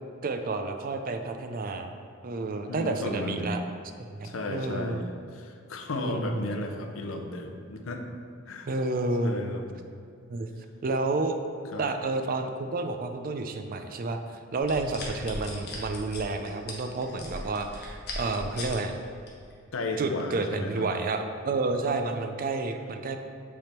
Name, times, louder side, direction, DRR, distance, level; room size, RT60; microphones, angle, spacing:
voice 1, 0.2-1.9 2.2-3.6 4.1-5.0 6.0-6.5 8.7-9.4 10.3-10.5 10.8-11.4 11.8-14.2 14.5-19.0 20.0-23.2, right 3 dB, 45° right, 6 dB, 0.4 m, -30 dB
voice 2, 2.7-3.5 4.2-8.0 8.5-8.7 9.2-9.6 11.7-11.8 19.7-20.9, left 2 dB, 70° left, 4 dB, 0.6 m, -34 dB
sound 1, 14.6-18.8 19.3-19.5, left 2 dB, 50° left, 1.2 m, -38 dB
7.7 x 3.5 x 4.4 m, 2.4 s
head